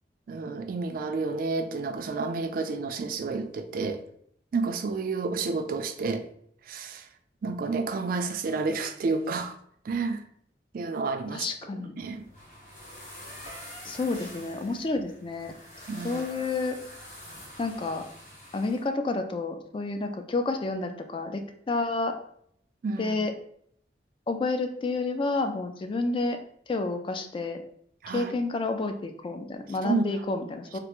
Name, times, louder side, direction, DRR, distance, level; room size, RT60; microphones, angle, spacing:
voice 1, 0.3-4.0 4.5-6.2 6.7-7.1 7.4-9.6 9.8-10.2 10.7-11.5 11.7-12.2 15.9-16.2 22.8-23.2 28.0-28.3 29.8-30.2, right 4 dB, 50° right, 7 dB, 0.3 m, -30 dB
voice 2, 11.3-12.0 13.8-15.5 16.0-16.8 17.6-18.0 18.5-22.2 23.0-23.3 24.3-26.4 26.7-27.6 28.1-30.8, left 3 dB, 30° left, 6 dB, 0.3 m, -30 dB
sound 1, 12.0-18.8, left 1 dB, 45° left, 1.0 m, -46 dB
3.3 x 2.4 x 2.9 m, 0.66 s
head